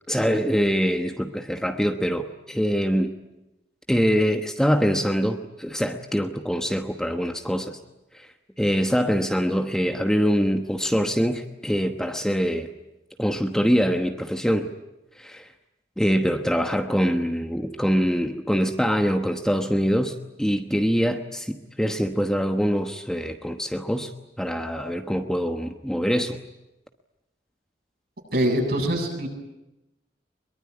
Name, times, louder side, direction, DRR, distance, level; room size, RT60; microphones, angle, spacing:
voice 1, 0.1-3.1 3.9-7.8 8.6-12.7 13.2-14.7 15.2-15.4 16.0-24.1 24.4-26.4, equal, 5° left, 5 dB, 1.1 m, -24 dB
voice 2, 28.3-29.3, equal, 60° right, 2 dB, 8.0 m, -23 dB
23.5 x 22.5 x 9.6 m, 0.95 s
head